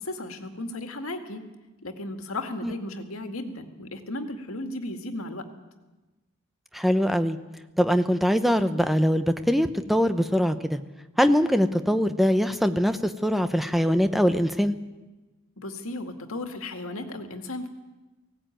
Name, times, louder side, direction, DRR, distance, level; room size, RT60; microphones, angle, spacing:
voice 1, 0.0-1.4 1.8-5.4 15.6-17.7, left 2 dB, 85° left, 6 dB, 2.1 m, -35 dB
voice 2, 6.7-7.4 7.8-10.8 11.2-14.7, equal, ahead, 9 dB, 0.8 m, -22 dB
18.5 x 17.0 x 9.1 m, 1.1 s
head